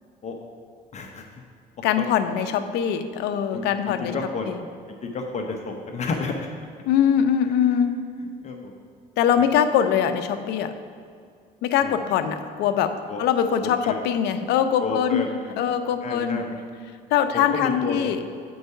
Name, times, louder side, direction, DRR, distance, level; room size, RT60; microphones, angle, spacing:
voice 1, 0.9-1.2 2.0-2.1 3.5-4.5 5.0-6.5 8.4-8.7 11.8-12.1 13.1-13.2 13.8-14.0 14.8-15.3 16.0-16.5 17.3-18.2, left 4 dB, 40° left, 3 dB, 0.7 m, -30 dB
voice 2, 1.8-4.1 4.5-4.6 6.9-8.0 9.2-10.7 11.6-15.2 15.6-16.4 17.1-18.2, left 8 dB, 85° left, 9 dB, 0.5 m, -22 dB
7.9 x 4.7 x 5.5 m, 2.2 s
cardioid pair, 110°, 17 cm